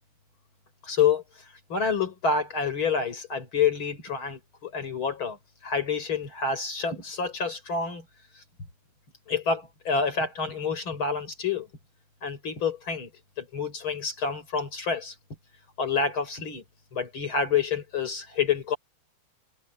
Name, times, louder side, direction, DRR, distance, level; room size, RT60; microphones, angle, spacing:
voice 1, 0.8-1.2 1.7-5.4 5.6-8.0 9.3-11.7 12.2-13.1 13.4-15.1 15.8-16.6 16.9-18.8, left 5 dB, 85° left, 5.9 m, -28 dB
omnidirectional pair, 2.2 m